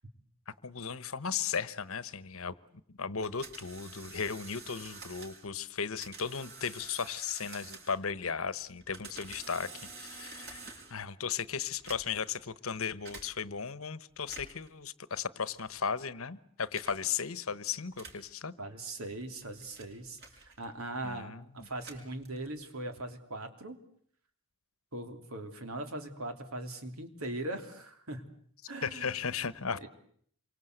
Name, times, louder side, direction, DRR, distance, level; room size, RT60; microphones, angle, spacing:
voice 1, 0.5-2.5 3.0-9.7 10.0-18.5 21.0-21.7 28.8-29.9, left 6 dB, 70° left, 16 dB, 1.1 m, -36 dB
sound 1, 3.2-5.5 6.0-8.1 8.7-11.0 11.7-12.3 13.0-13.3 14.2-14.7 15.6-15.9 16.7-17.1 17.9-18.3 19.1-20.8 21.6-22.6, right 4 dB, 50° right, 5.7 m, -49 dB
voice 2, 18.6-23.8 24.9-28.3 28.7-29.2 29.7-29.9, right 2 dB, 75° right, 7 dB, 3.2 m, -40 dB
27.5 x 24.0 x 8.0 m, 0.64 s
head